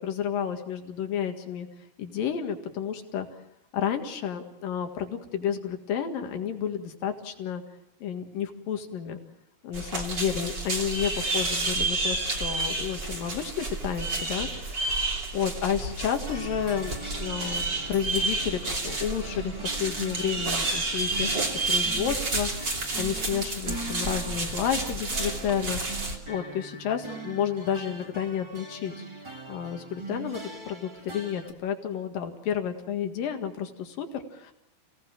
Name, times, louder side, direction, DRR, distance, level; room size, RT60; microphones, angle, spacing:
voice 1, 0.0-1.7 2.0-3.3 3.7-7.6 8.0-9.2 9.6-25.8 26.3-28.9 29.5-34.5, left 8 dB, 65° left, 5 dB, 3.4 m, -31 dB
sound 1, 9.7-26.2, right 3 dB, 30° right, 3.1 m, -30 dB
sound 2, 16.2-31.5, right 2 dB, 15° right, 1.1 m, -41 dB
29.0 x 17.5 x 7.4 m, 0.92 s
omnidirectional pair, 4.5 m